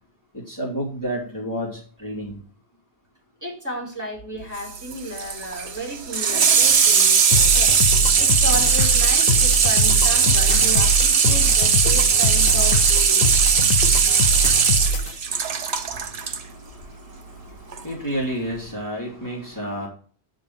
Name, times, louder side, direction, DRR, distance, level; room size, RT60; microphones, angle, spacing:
voice 1, 0.3-2.4 15.3-19.9, equal, 15° left, -5 dB, 3.0 m, -31 dB
voice 2, 3.4-7.7 8.2-13.4, equal, 15° right, -3 dB, 4.1 m, -33 dB
Water tap faucet / Sink (filling or washing), 4.6-16.4 17.7-17.8, right 6 dB, 75° right, 1.2 m, -19 dB
sound 1, 7.3-15.1, left 1 dB, 60° left, 1.0 m, -23 dB
10.0 x 3.9 x 6.9 m, 0.43 s
omnidirectional pair, 1.1 m